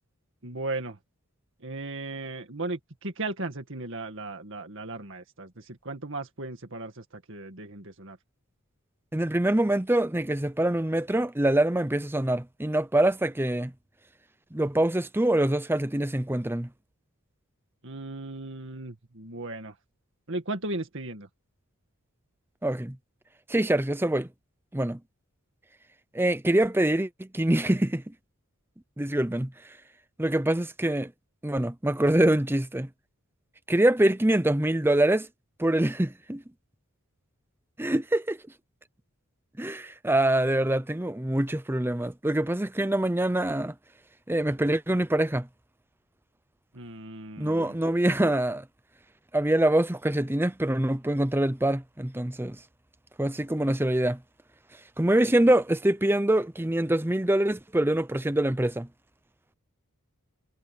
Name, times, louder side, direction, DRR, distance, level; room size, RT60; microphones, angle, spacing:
voice 1, 0.4-1.0 1.6-8.2 17.8-19.8 20.3-21.3 46.7-47.8, right 2 dB, 60° right, 2.1 m, -36 dB
voice 2, 9.1-13.7 14.5-16.7 22.6-23.0 23.5-24.3 24.7-25.0 26.1-28.0 29.0-29.5 30.2-31.1 31.4-32.9 33.7-35.3 35.6-36.4 37.8-38.4 39.6-43.7 44.3-45.5 47.4-48.6 49.3-52.6 53.2-54.2 55.0-58.9, right 1 dB, 10° right, 0.7 m, -24 dB
head